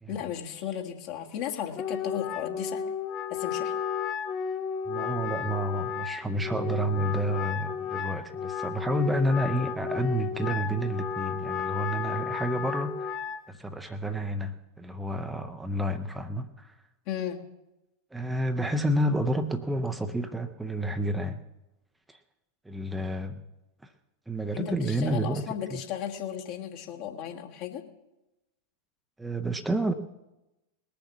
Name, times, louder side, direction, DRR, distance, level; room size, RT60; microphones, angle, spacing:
voice 1, 0.1-2.8 3.3-3.7 17.0-17.4 24.5-27.9, left 9 dB, 45° left, 2 dB, 1.7 m, -35 dB
Wind instrument woodwind instrument, 1.7-13.4, left 7 dB, 30° left, 0.7 m, -33 dB
voice 2, 4.9-13.2 13.5-16.8 18.1-21.4 22.1-22.2 22.6-23.4 23.8-23.9 24.3-25.4 25.7-25.8 29.2-29.9, right 1 dB, 5° right, 7 dB, 0.7 m, -30 dB
20.0 x 7.0 x 7.4 m, 0.95 s
figure-of-eight pair, 90°, 0 cm